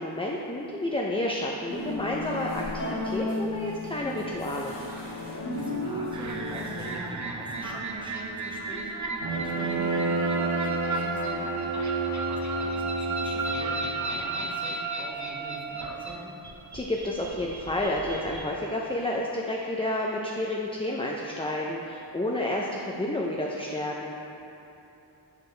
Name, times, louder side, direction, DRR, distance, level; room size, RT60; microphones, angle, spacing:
voice 1, 0.0-4.7 16.7-24.1, left 1 dB, 15° left, -2 dB, 0.4 m, -30 dB
sound 1, 1.7-7.0, left 2 dB, 65° left, 1.5 m, -34 dB
voice 2, 5.5-11.6 12.5-16.4, right 1 dB, 10° right, -4 dB, 1.1 m, -43 dB
sound 2, 6.1-18.4, right 3 dB, 40° right, 0.6 m, -34 dB
Bowed string instrument, 9.2-14.1, right 3 dB, 85° right, 0.9 m, -30 dB
6.7 x 6.4 x 3.2 m, 3.0 s
wide cardioid pair, 85°, 45 cm